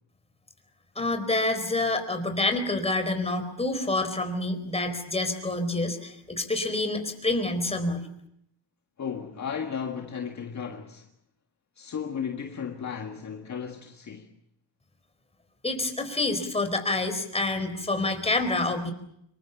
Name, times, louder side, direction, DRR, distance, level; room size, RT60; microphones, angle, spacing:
voice 1, 1.0-8.0 15.6-18.9, left 2 dB, 15° left, 4.5 m, -27 dB
voice 2, 9.0-11.1 11.8-14.3, left 7 dB, 40° left, 1.8 m, -34 dB
26.5 x 23.0 x 7.1 m
cardioid pair, 120°, 42 cm